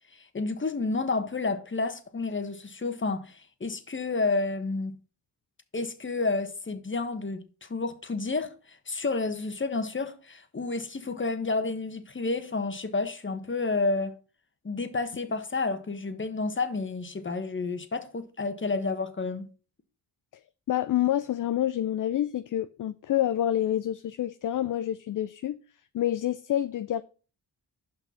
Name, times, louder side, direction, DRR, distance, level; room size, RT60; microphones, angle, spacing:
voice 1, 0.1-5.0 5.7-14.2 14.6-19.5, left 3 dB, 25° left, 1.2 m, -30 dB
voice 2, 20.7-25.6 25.9-27.0, left 12 dB, 45° left, 0.5 m, -27 dB
6.0 x 5.5 x 5.7 m
supercardioid pair, 50°, 46 cm